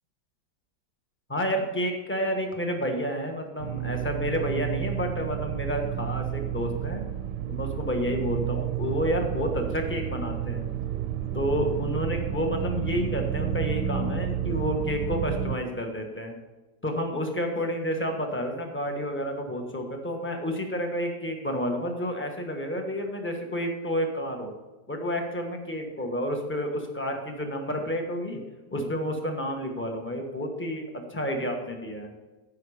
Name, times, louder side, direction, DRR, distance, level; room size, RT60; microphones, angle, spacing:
voice 1, 1.3-7.0 7.5-10.7 11.3-16.3 16.8-24.5 24.9-28.4 28.7-30.8 31.1-32.1, equal, 10° left, 3 dB, 1.1 m, -30 dB
sound 1, 3.6-15.6, right 10 dB, 70° right, 1.2 m, -31 dB
15.0 x 5.7 x 4.9 m, 1.2 s
omnidirectional pair, 2.0 m